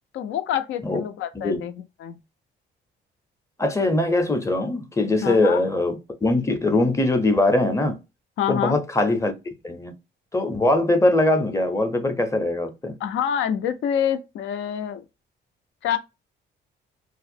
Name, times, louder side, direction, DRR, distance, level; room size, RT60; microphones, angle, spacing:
voice 1, 0.1-2.2 5.2-5.6 8.4-8.8 13.0-15.0 15.8-16.0, left 9 dB, 75° left, 0.5 m, -26 dB
voice 2, 3.6-8.0 8.5-9.3 9.6-9.9 10.3-13.0, left 2 dB, 15° left, 0.6 m, -21 dB
2.4 x 2.0 x 2.5 m
cardioid pair, 90°, 20 cm